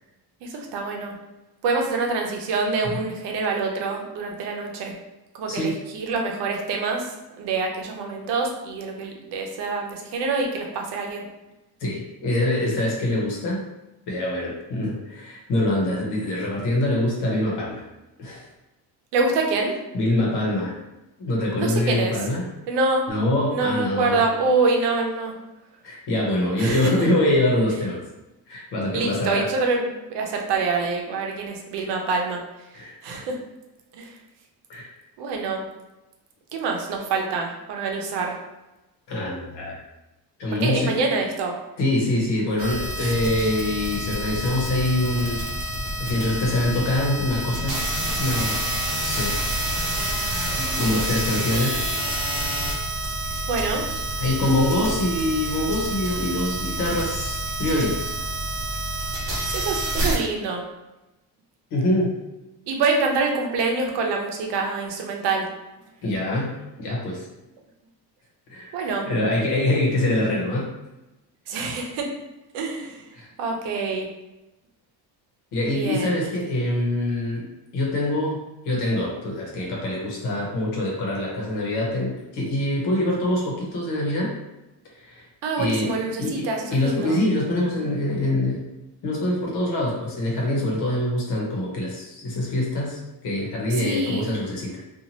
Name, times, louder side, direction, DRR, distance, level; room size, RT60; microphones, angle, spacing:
voice 1, 0.4-1.2 1.6-4.9 5.4-7.1 7.4-11.2 19.1-19.8 21.6-22.2 22.7-23.1 23.5-25.4 26.6-26.9 28.9-32.4 33.0-33.4 33.9-34.1 35.2-35.7 36.5-38.4 40.6-41.6 43.0-43.1 53.5-53.9 59.5-60.6 62.7-65.5 68.7-69.1 71.5-72.1 72.5-73.0 73.4-74.1 75.7-76.2 85.4-87.2 93.8-94.3, right 3 dB, 85° right, 2 dB, 0.7 m, -26 dB
voice 2, 5.5-5.8 11.8-13.6 14.1-17.8 18.2-18.4 19.9-20.8 21.2-22.4 23.1-24.2 25.8-28.0 28.5-29.5 32.7-33.0 34.7-34.9 39.1-39.8 40.4-41.0 41.8-45.4 46.0-47.8 48.2-48.6 49.0-49.3 50.1-50.3 50.6-51.8 54.2-58.0 61.7-62.2 66.0-67.3 68.5-70.7 73.1-73.3 75.5-77.5 77.7-84.3 85.0-85.2 85.6-88.7 89.0-94.8, left 1 dB, 75° left, -2 dB, 1.1 m, -24 dB
sound 1, 42.6-60.2, right 1 dB, 35° right, 0.9 m, -28 dB
2.7 x 2.4 x 2.9 m, 1.0 s
cardioid pair, 160°, 40 cm